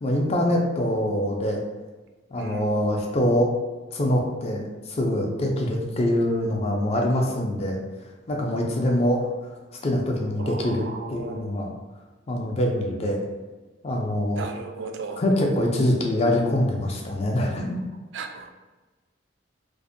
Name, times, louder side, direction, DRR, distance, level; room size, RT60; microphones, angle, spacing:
voice 1, 0.0-1.6 2.3-3.5 3.9-7.8 8.3-9.3 9.8-11.7 12.3-13.2 13.8-14.5 15.2-17.8, left 1 dB, 35° left, 0 dB, 0.4 m, -24 dB
voice 2, 2.4-2.7 10.4-11.4 14.4-15.2 18.1-18.5, right 4 dB, 75° right, 4 dB, 0.3 m, -36 dB
2.5 x 2.0 x 2.5 m, 1.3 s
head